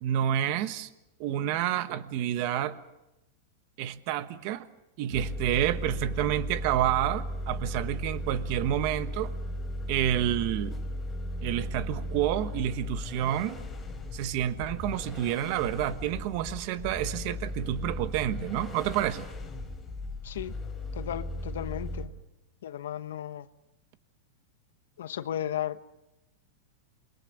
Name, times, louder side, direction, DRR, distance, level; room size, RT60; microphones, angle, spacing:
voice 1, 0.0-0.9 1.2-2.8 3.8-4.7 5.0-9.3 9.9-10.8 11.4-13.6 14.1-19.3, right 11 dB, 50° right, 1.2 m, -29 dB
sound 1, 5.1-22.1, left 1 dB, 10° left, 4.0 m, -36 dB
voice 2, 20.2-20.6 20.9-22.1 22.6-23.5 25.0-25.8, left 10 dB, 90° left, 1.1 m, -35 dB
28.0 x 22.5 x 6.5 m
supercardioid pair, 150°, 0 cm